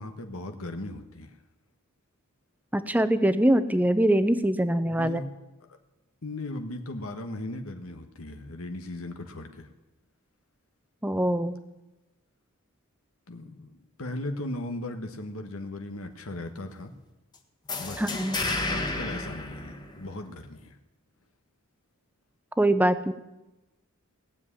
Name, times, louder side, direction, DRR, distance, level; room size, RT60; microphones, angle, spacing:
voice 1, 0.0-1.3 5.0-5.3 5.7-5.8 6.2-9.7 13.3-16.9 17.8-18.0 18.7-20.8, left 1 dB, 85° left, 6 dB, 1.4 m, -37 dB
voice 2, 2.7-5.2 11.0-11.6 18.0-18.4 22.6-23.1, right 1 dB, 10° right, 12 dB, 0.8 m, -23 dB
sound 1, 17.7-20.4, left 2 dB, 20° left, 1.5 m, -32 dB
18.0 x 7.4 x 9.9 m, 1.0 s
head